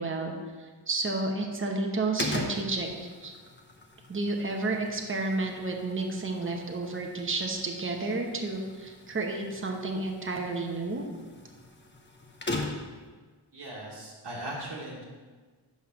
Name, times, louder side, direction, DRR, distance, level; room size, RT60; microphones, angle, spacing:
voice 1, 0.0-2.9 3.2-3.3 4.1-11.1, right 2 dB, 25° right, 2 dB, 1.0 m, -31 dB
sound 1, 2.2-13.1, left 2 dB, 25° left, 0.9 m, -40 dB
voice 2, 13.5-15.0, right 1 dB, 60° right, -4 dB, 1.6 m, -38 dB
5.8 x 5.5 x 5.9 m, 1.4 s
wide cardioid pair, 75°, 46 cm